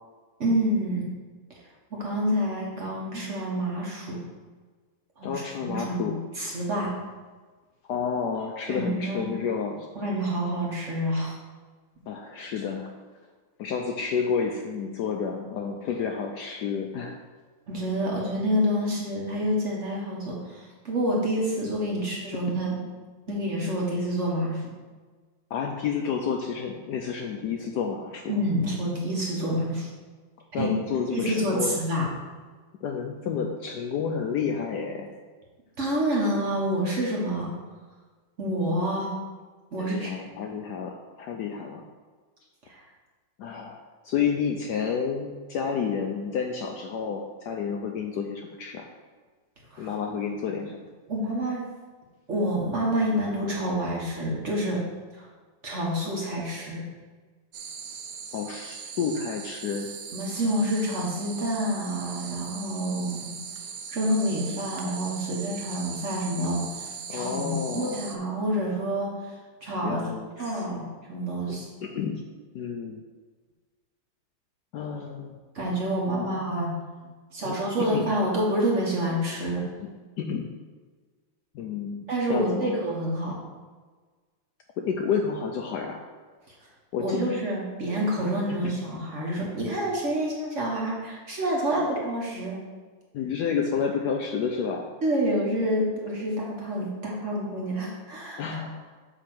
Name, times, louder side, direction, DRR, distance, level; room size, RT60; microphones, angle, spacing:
voice 1, 0.4-1.1 1.9-4.2 5.2-6.9 8.7-9.3 9.9-11.3 17.7-22.8 23.3-24.7 28.3-29.9 30.6-30.7 31.1-32.1 35.8-37.5 38.4-39.1 39.7-40.2 42.7-42.8 49.7-49.9 51.1-51.6 52.3-54.8 55.1-55.3 55.6-56.8 60.1-63.3 63.9-69.1 69.6-70.0 70.4-71.7 75.5-79.6 82.1-83.3 87.0-92.6 95.0-98.4, equal, 45° right, -3 dB, 1.3 m, -28 dB
voice 2, 5.2-6.2 7.8-9.9 12.1-13.0 13.6-17.2 22.0-22.1 25.5-28.2 30.5-31.8 32.8-35.1 39.8-41.8 43.4-43.8 44.0-48.9 49.8-50.8 58.3-59.9 67.1-68.1 69.8-70.8 71.5-72.2 72.5-73.0 74.7-75.4 76.1-76.3 77.4-78.1 79.8-79.9 80.2-80.5 81.5-82.8 84.8-86.0 86.9-87.3 88.2-88.8 93.1-94.9 98.4-98.8, left 6 dB, 75° left, 3 dB, 1.0 m, -30 dB
sound 1, 57.5-68.2, right 6 dB, 65° right, 0.9 m, -39 dB
8.3 x 3.0 x 6.1 m, 1.4 s
omnidirectional pair, 2.2 m